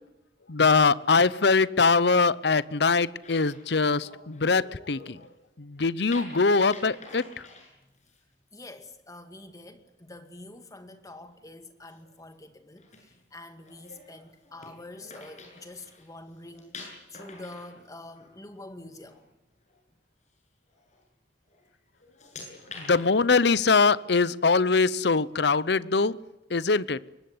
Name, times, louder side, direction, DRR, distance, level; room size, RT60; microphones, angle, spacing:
voice 1, 0.5-5.2 5.6-7.2 22.8-26.2 26.5-27.0, left 4 dB, 65° left, 0.8 m, -22 dB
sound 1, 3.2-5.3 6.1-8.2 11.1-11.5 11.9-12.1 12.7-16.1 16.3-18.6 18.9-19.2 19.7-19.8 20.7-21.0 21.5-21.7 22.0-23.2, left 3 dB, 40° left, 7.9 m, -47 dB
voice 2, 8.5-19.3, left 2 dB, 20° left, 2.3 m, -46 dB
23.0 x 20.5 x 9.6 m
head